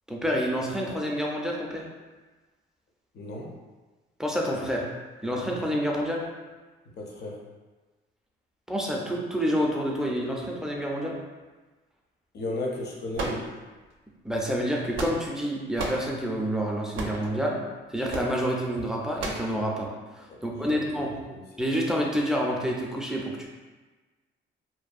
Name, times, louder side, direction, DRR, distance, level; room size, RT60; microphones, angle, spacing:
voice 1, 0.1-1.8 4.2-4.8 5.2-6.2 8.7-11.2 14.2-17.6 17.9-19.9 20.1-21.2 21.6-23.5, equal, 5° right, -2 dB, 0.4 m, -28 dB
voice 2, 3.1-3.5 7.0-7.4 12.3-13.5 20.3-21.4, left 1 dB, 55° left, -1 dB, 0.6 m, -35 dB
sound 1, 13.1-13.9 14.7-15.4 15.8-16.1 16.9-17.3 18.1-18.3 19.2-19.5, right 2 dB, 80° right, 0.4 m, -33 dB
2.6 x 2.1 x 2.4 m, 1.3 s
cardioid pair, 90°, 20 cm